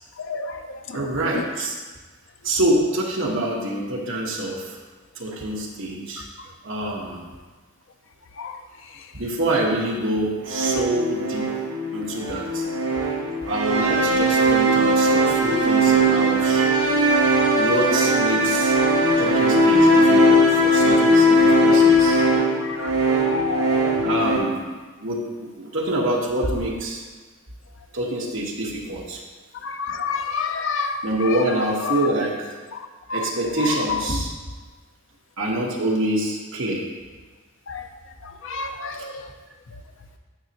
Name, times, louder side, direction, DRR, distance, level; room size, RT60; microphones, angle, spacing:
voice 1, 0.3-0.6 1.3-1.4 8.4-8.5 22.8-22.9 23.2-24.1 29.6-31.0 31.9-32.0 33.1-33.2 37.7-37.8 38.4-39.1, left 5 dB, 60° left, 6 dB, 0.6 m, -28 dB
voice 2, 0.9-1.8 2.4-4.8 5.1-6.2 6.6-7.3 9.1-11.5 11.9-12.6 13.4-16.7 17.5-18.8 19.2-22.2 24.0-24.6 25.0-27.0 27.9-29.2 31.0-32.6 33.1-34.3 35.4-36.8, right 1 dB, 65° right, -2 dB, 1.4 m, -26 dB
sound 1, 10.5-24.4, equal, 90° right, 2.3 m, -19 dB
10.0 x 6.3 x 3.0 m, 1.4 s
head